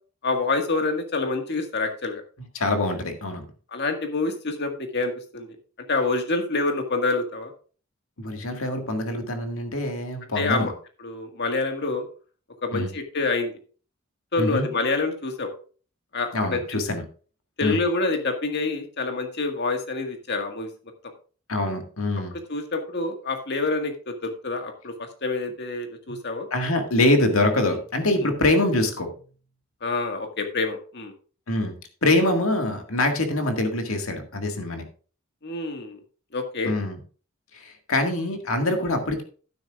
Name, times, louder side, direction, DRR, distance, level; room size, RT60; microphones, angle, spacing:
voice 1, 0.2-2.2 3.7-5.5 5.9-7.5 10.4-10.7 11.0-12.1 12.6-13.6 14.3-15.5 16.1-16.9 17.6-20.7 22.5-26.5 28.2-28.3 29.8-31.1 35.4-36.0 36.3-36.8, left 3 dB, 55° left, 5 dB, 1.8 m, -27 dB
voice 2, 2.6-3.4 8.2-10.7 12.7-12.9 14.4-14.7 16.3-17.0 17.6-17.8 21.5-22.3 26.1-26.2 26.5-29.1 31.5-31.7 32.0-34.8 36.6-37.0 37.5-39.2, left 2 dB, 85° left, 5 dB, 1.9 m, -24 dB
12.0 x 10.0 x 2.4 m, 0.39 s
head